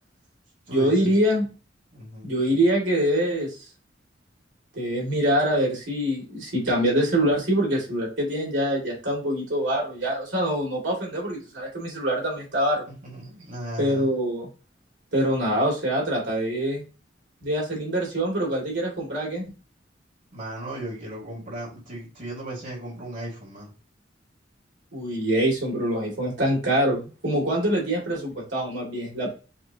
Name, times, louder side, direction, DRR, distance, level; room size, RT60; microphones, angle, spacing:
voice 1, 0.7-1.5 2.2-3.7 4.7-12.9 13.8-14.5 15.1-16.8 17.4-19.5 24.9-29.3, right 1 dB, 85° right, -3 dB, 2.4 m, -24 dB
voice 2, 1.9-2.3 13.0-14.1 20.3-23.7, right 1 dB, 45° right, -5 dB, 2.4 m, -36 dB
6.7 x 2.8 x 2.8 m, 0.33 s
head